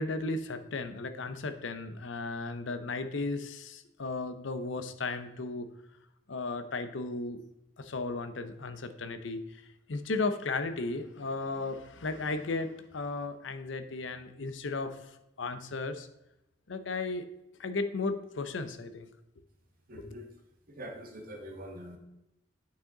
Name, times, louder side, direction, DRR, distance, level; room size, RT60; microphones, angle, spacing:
voice 1, 0.0-5.7 6.3-7.4 7.8-9.4 9.9-15.0 15.4-16.1 16.7-17.2 17.6-19.1, left 3 dB, 85° left, 9 dB, 0.7 m, -35 dB
voice 2, 19.9-20.3 20.7-22.0, equal, 50° right, 2 dB, 1.6 m, -44 dB
8.7 x 6.3 x 3.9 m, 0.89 s
head